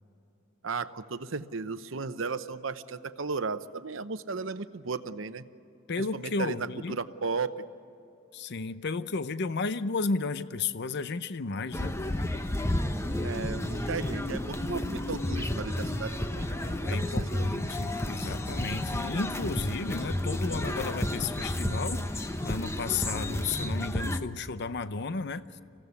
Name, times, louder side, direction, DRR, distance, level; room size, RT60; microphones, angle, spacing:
voice 1, 0.6-5.4 6.0-7.5 13.2-16.6 16.9-17.5, right 4 dB, 70° right, 12 dB, 0.9 m, -35 dB
voice 2, 5.9-7.0 8.3-12.0 16.9-25.4, left 4 dB, 55° left, 13 dB, 0.7 m, -33 dB
sound 1, 11.7-24.2, left 1 dB, 15° left, 0.9 m, -31 dB
25.5 x 16.0 x 9.7 m, 2.9 s
head